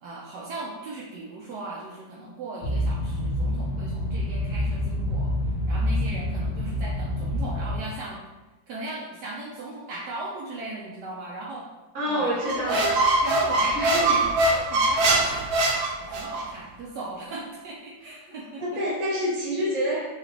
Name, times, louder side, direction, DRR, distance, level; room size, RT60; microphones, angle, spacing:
voice 1, 0.0-5.3 5.7-8.2 8.7-11.7 12.1-12.3 12.6-12.9 13.2-15.5 15.8-18.6, right 2 dB, 70° right, -4 dB, 1.1 m, -37 dB
sound 1, 2.6-7.8, left 1 dB, 85° left, 1.6 m, -27 dB
voice 2, 11.9-13.0 13.7-14.2 18.3-20.0, equal, 35° right, -5 dB, 1.0 m, -28 dB
Squeak, 12.4-16.5, right 2 dB, 90° right, 1.4 m, -23 dB
4.8 x 2.3 x 3.2 m, 1.1 s
omnidirectional pair, 2.0 m